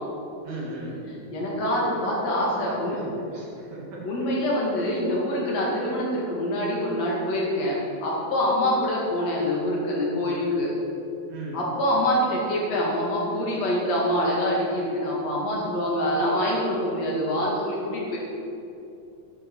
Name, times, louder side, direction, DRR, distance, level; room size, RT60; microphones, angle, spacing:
voice 1, 0.4-1.0 2.7-4.2 11.3-11.6, right 1 dB, 80° right, -4 dB, 3.5 m, -37 dB
voice 2, 1.3-3.0 4.0-10.7 11.5-18.2, left 1 dB, 65° left, -4 dB, 3.2 m, -25 dB
10.0 x 9.8 x 4.6 m, 2.7 s
omnidirectional pair, 3.3 m